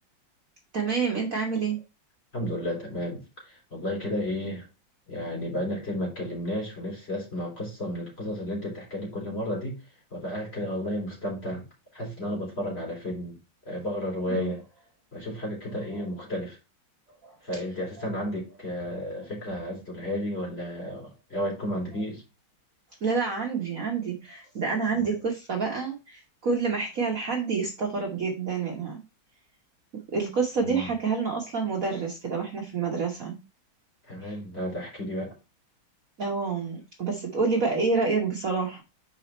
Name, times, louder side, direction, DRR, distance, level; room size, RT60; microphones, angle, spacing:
voice 1, 0.7-1.8 14.3-14.5 17.2-17.3 23.0-29.0 30.1-33.4 34.2-34.4 36.2-38.8, right 4 dB, 50° right, 1.4 m, -28 dB
voice 2, 2.3-4.6 5.1-9.8 10.1-11.6 11.9-13.4 13.7-14.6 15.1-16.6 17.4-22.2 24.9-25.0 30.6-30.9 34.1-35.3, equal, 30° left, 3.9 m, -32 dB
5.9 x 4.8 x 4.2 m
omnidirectional pair, 2.2 m